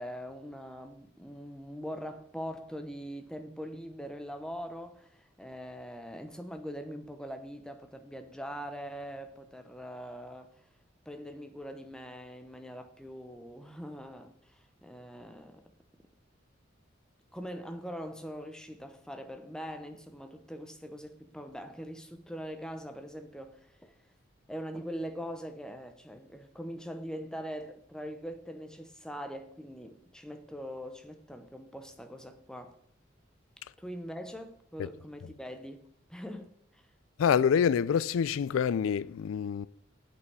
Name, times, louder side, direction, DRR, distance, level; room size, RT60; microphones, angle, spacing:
voice 1, 0.0-10.6 11.1-15.6 17.3-23.9 24.5-32.8 33.8-35.8 36.1-36.9, equal, 5° left, 0.8 m, -42 dB
voice 2, 37.2-39.7, left 7 dB, 90° left, 0.3 m, -26 dB
8.5 x 8.2 x 4.7 m
head